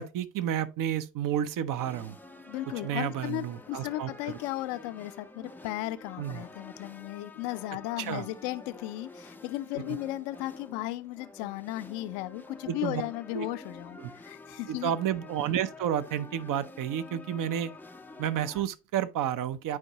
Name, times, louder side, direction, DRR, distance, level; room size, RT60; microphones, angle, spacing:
voice 1, 0.0-2.2 2.8-4.4 6.2-6.4 8.0-8.3 9.8-10.0 12.7-13.0 13.3-13.5 14.0-14.1 14.7-17.7 18.2-19.8, right 10 dB, 45° right, 0.7 m, -31 dB
sound 1, 1.8-18.6, left 2 dB, 5° left, 0.5 m, -49 dB
voice 2, 2.5-14.9, left 16 dB, 60° left, 0.8 m, -35 dB
9.7 x 4.5 x 2.9 m
hypercardioid pair, 70°, 47 cm